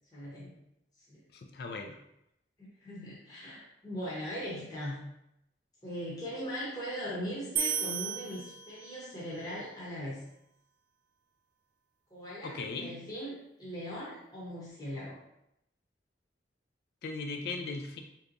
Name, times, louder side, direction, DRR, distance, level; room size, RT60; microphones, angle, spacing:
voice 1, 0.1-0.5 1.1-1.2 2.6-5.0 5.8-10.2 12.1-15.2, equal, 20° left, -7 dB, 0.9 m, -40 dB
voice 2, 1.3-2.0 12.4-12.9 17.0-18.0, left 3 dB, 60° left, 4 dB, 0.3 m, -38 dB
sound 1, 7.6-9.2, right 7 dB, 50° right, 0.3 m, -34 dB
3.3 x 2.8 x 2.6 m, 0.82 s
head